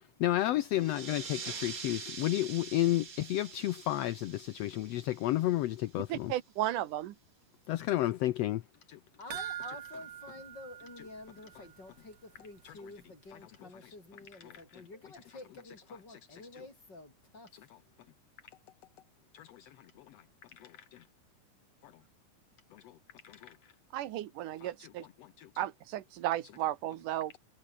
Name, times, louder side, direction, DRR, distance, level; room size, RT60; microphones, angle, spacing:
voice 1, 0.2-6.3 7.7-8.6 8.9-9.0 12.6-12.7 14.4-14.8 19.3-19.7 20.6-21.0 21.8-21.9 22.7-22.9 23.2-23.5 25.4-25.5, left 15 dB, 75° left, 1.6 m, -32 dB
sound 1, 0.7-5.9, right 5 dB, 35° right, 1.7 m, -45 dB
voice 2, 6.1-7.1 23.9-25.1 25.6-27.3, right 13 dB, 90° right, 2.7 m, -34 dB
voice 3, 9.2-17.6, left 2 dB, 30° left, 7.2 m, -50 dB
sound 2, 9.3-11.8 12.1-12.2 12.7-12.8, right 11 dB, 60° right, 2.2 m, -43 dB
omnidirectional pair, 3.6 m